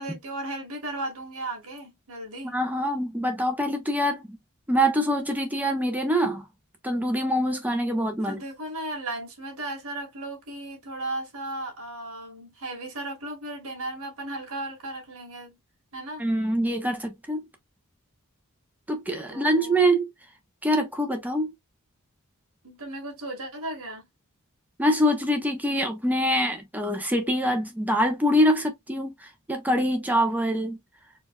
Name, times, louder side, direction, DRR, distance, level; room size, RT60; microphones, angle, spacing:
voice 1, 0.0-2.6 8.2-15.6 15.9-16.2 19.3-19.9 22.6-24.1, right 2 dB, 70° right, 2.1 m, -36 dB
voice 2, 2.5-4.4 4.7-6.4 6.8-8.4 16.2-17.5 18.9-20.1 20.6-21.5 24.8-30.8, equal, 10° right, 1.0 m, -24 dB
4.5 x 2.8 x 2.3 m
head